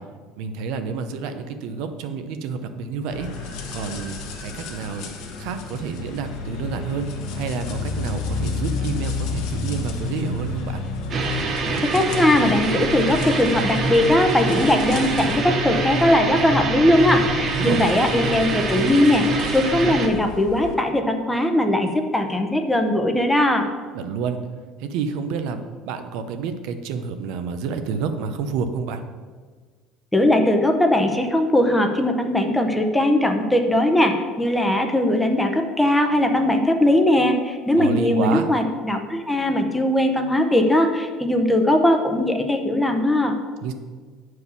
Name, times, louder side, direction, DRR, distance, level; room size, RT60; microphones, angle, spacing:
voice 1, 0.4-5.1 5.4-7.1 7.3-10.8 17.6-17.9 23.9-24.4 24.8-29.0 37.8-38.5 43.6-43.7, right 5 dB, 70° right, 8 dB, 0.7 m, -29 dB
sound 1, 3.1-20.7, left 4 dB, 70° left, 1.4 m, -32 dB
sound 2, 11.1-20.1, right 3 dB, 35° right, 1.0 m, -25 dB
voice 2, 11.9-23.7 30.1-43.3, left 1 dB, 5° left, 4 dB, 0.7 m, -19 dB
8.0 x 4.7 x 7.0 m, 1.5 s
cardioid pair, 150°, 0 cm